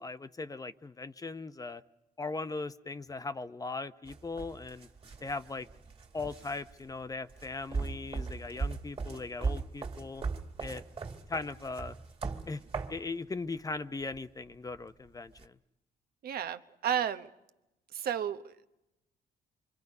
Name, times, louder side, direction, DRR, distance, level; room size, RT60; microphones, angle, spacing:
voice 1, 0.0-1.8 2.2-4.9 5.2-5.7 6.1-10.2 10.6-10.8 11.3-11.9 12.5-12.6 12.9-15.5, left 3 dB, 20° left, 12 dB, 0.7 m, -39 dB
sound 1, 4.1-13.0 14.0-14.2 15.4-15.5, right 4 dB, 35° right, 2.3 m, -39 dB
voice 2, 16.2-17.3 17.9-18.7, right 9 dB, 70° right, 11 dB, 1.0 m, -33 dB
26.5 x 24.5 x 5.4 m, 0.93 s
cardioid pair, 105°, 16 cm